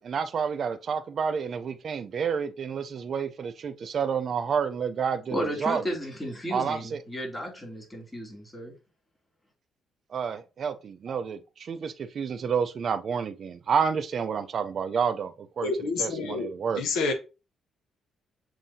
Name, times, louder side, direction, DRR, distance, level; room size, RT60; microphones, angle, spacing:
voice 1, 0.0-5.8 6.5-7.0 10.1-15.7 16.0-16.8, right 6 dB, 55° right, 0.4 m, -29 dB
voice 2, 5.3-8.8, equal, 15° left, 2.4 m, -34 dB
voice 3, 15.6-17.1, left 3 dB, 85° left, 0.8 m, -29 dB
7.2 x 2.7 x 2.6 m
cardioid pair, 90°, 0 cm